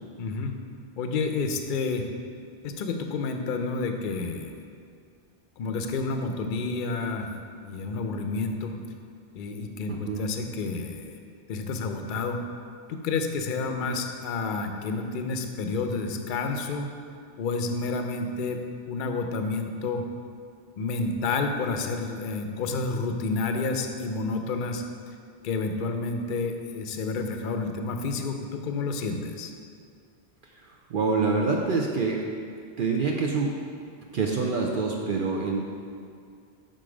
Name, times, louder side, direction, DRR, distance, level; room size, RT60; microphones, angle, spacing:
voice 1, 0.2-0.5 1.0-2.1 2.6-4.5 5.6-7.3 7.6-8.7 9.3-11.2 11.5-12.4 12.9-16.9 17.4-18.6 18.9-20.0 20.8-24.8 25.4-29.5, left 3 dB, 60° left, 5 dB, 0.6 m, -30 dB
voice 2, 9.9-10.2 30.6-32.2 32.8-33.5 34.1-35.6, right 4 dB, 60° right, -1 dB, 0.7 m, -26 dB
6.8 x 3.9 x 4.9 m, 2.3 s
omnidirectional pair, 1.1 m